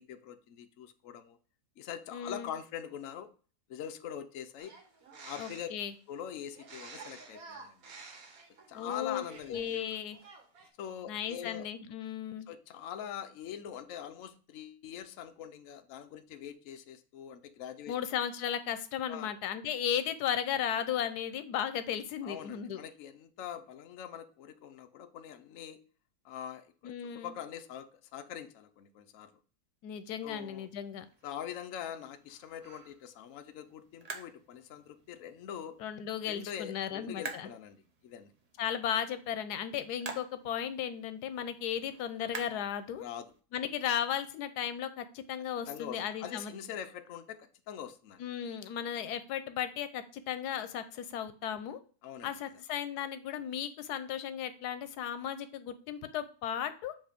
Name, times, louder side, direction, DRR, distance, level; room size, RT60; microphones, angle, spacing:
voice 1, 0.0-1.4 1.8-3.3 3.7-4.7 5.2-5.7 6.1-7.8 8.7-9.6 10.8-11.7 12.5-17.9 19.1-19.3 22.2-25.8 26.2-29.3 30.2-30.7 31.2-35.8 36.3-38.3 43.0-43.3 45.7-48.2 52.0-52.3, left 9 dB, 65° left, 8 dB, 0.9 m, -43 dB
voice 2, 2.1-2.5 5.4-5.9 8.7-9.2 9.5-10.2 11.1-12.5 17.9-22.8 26.8-27.3 29.8-31.0 35.8-37.5 38.6-43.0 43.5-46.5 48.2-51.8 52.2-56.9, left 9 dB, 90° left, 11 dB, 1.2 m, -35 dB
sound 1, 4.6-5.8 6.5-9.9 10.1-10.7, right 4 dB, 65° right, 1.5 m, -50 dB
sound 2, 30.2-43.4, right 4 dB, 45° right, 0.5 m, -50 dB
7.5 x 2.8 x 5.1 m, 0.39 s
omnidirectional pair, 1.6 m